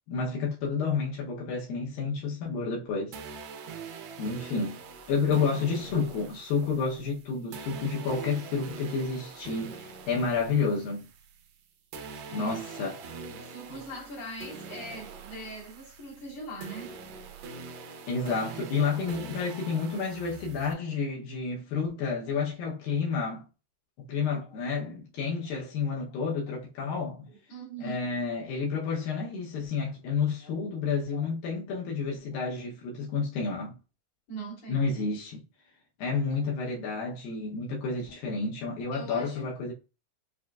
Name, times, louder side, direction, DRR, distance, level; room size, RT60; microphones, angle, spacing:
voice 1, 0.1-3.2 4.2-4.8 5.1-11.1 12.3-13.0 13.7-13.8 18.1-23.4 24.0-27.3 27.8-33.8 34.7-35.4 36.0-39.7, left 5 dB, 75° left, 2.5 m, -30 dB
sound 1, 3.1-11.6 11.9-20.7, right 5 dB, 80° right, 1.6 m, -44 dB
voice 2, 12.3-12.6 13.1-16.9 19.0-19.1 24.4-24.6 25.4-25.6 26.1-26.2 26.5-26.6 27.3-28.1 30.4-30.5 31.1-31.2 34.3-34.9 36.3-36.5 38.9-39.5, right 2 dB, 45° left, 2.7 m, -42 dB
6.2 x 2.9 x 2.3 m
omnidirectional pair, 4.2 m